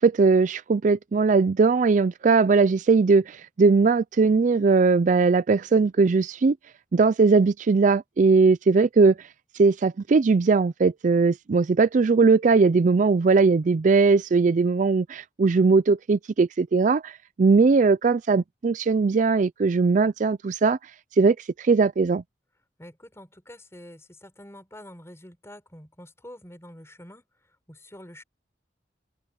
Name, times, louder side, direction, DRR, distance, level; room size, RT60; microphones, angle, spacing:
voice 1, 0.0-6.6 6.9-9.2 9.6-20.8 21.2-22.2, right 4 dB, 45° right, 0.4 m, -20 dB
voice 2, 22.8-27.2 27.7-28.2, left 1 dB, 15° left, 5.8 m, -46 dB
open air
head